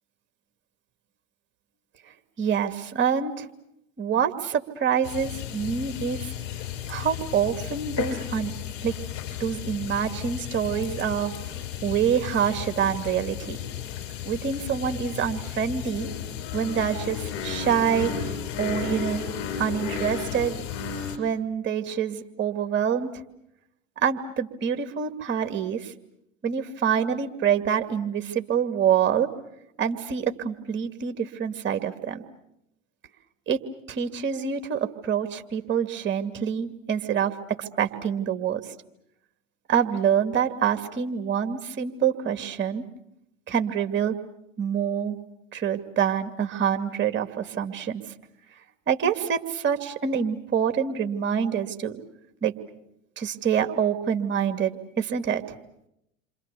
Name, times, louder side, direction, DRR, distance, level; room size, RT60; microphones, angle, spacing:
voice 1, 2.4-3.5 4.0-6.3 6.9-8.5 8.8-8.9 9.4-11.3 11.8-13.6 14.2-16.1 16.5-18.1 18.6-19.2 19.6-20.5 21.2-23.1 24.0-25.9 26.4-29.3 29.8-32.2 33.5-33.6 33.9-38.7 39.7-42.9 43.5-44.2 44.6-45.2 45.5-48.0 48.9-52.0 52.4-52.5 53.2-55.4, right 8 dB, 30° right, 8 dB, 2.5 m, -26 dB
sound 1, 5.0-21.2, left 8 dB, 55° left, 6.0 m, -34 dB
28.5 x 26.0 x 7.0 m, 0.81 s
hypercardioid pair, 95°, 37 cm